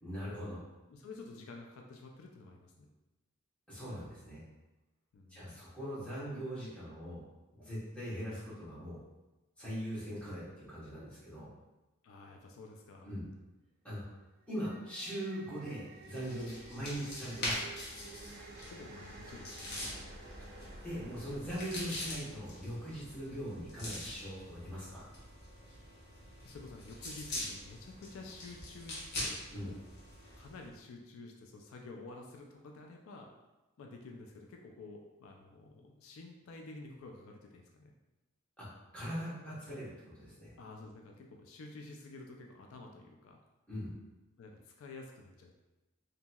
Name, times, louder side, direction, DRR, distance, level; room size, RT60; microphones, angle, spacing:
voice 1, 0.0-0.6 3.7-4.4 5.3-7.2 7.5-9.0 9.6-11.5 13.0-13.2 13.8-14.2 14.5-17.7 20.8-25.1 29.5-29.7 38.6-38.7 38.9-40.5 43.7-43.9, equal, 5° left, -10 dB, 1.0 m, -41 dB
voice 2, 0.9-2.9 5.1-5.6 12.0-13.1 18.6-20.2 26.4-29.8 30.4-33.3 33.8-37.9 40.6-43.4 44.4-45.6, left 3 dB, 75° left, 2 dB, 0.3 m, -50 dB
sound 1, 14.4-23.7, right 2 dB, 50° right, 0.4 m, -53 dB
sound 2, 16.0-30.7, left 1 dB, 50° left, 0.9 m, -44 dB
2.8 x 2.7 x 2.2 m, 1.1 s
head